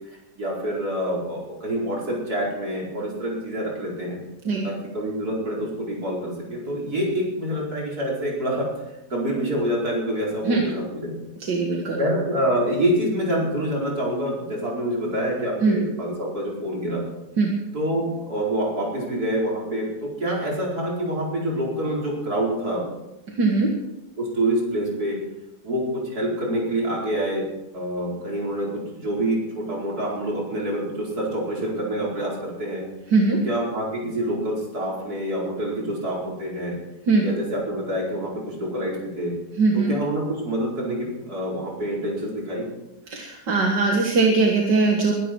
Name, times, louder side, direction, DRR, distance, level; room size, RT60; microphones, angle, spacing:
voice 1, 0.4-4.2 4.6-11.1 12.0-17.0 17.7-22.8 24.2-25.2 25.6-27.5 27.7-32.9 33.5-36.8 37.2-39.3 39.7-42.7, right 1 dB, 60° right, -4 dB, 5.2 m, -26 dB
voice 2, 11.5-12.0 15.6-15.8 17.4-17.5 23.3-23.7 33.1-33.4 37.1-37.2 39.6-39.9 43.1-45.1, right 3 dB, 85° right, 0 dB, 2.3 m, -20 dB
22.0 x 12.0 x 4.6 m, 0.95 s
omnidirectional pair, 1.8 m